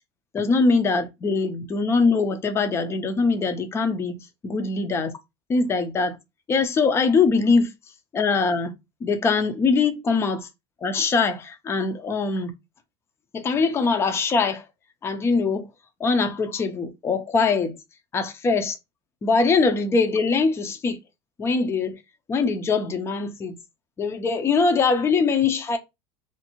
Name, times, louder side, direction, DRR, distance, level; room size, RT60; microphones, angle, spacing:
voice 1, 0.3-5.1 5.5-6.2 6.5-7.7 8.1-8.7 9.0-10.5 10.8-12.5 13.3-14.7 15.0-15.7 16.0-17.8 18.1-18.7 19.2-21.0 21.4-22.0 22.3-23.6 24.0-25.8, left 4 dB, 20° left, 0.5 m, -22 dB
2.6 x 2.5 x 2.9 m
cardioid pair, 150°, 13 cm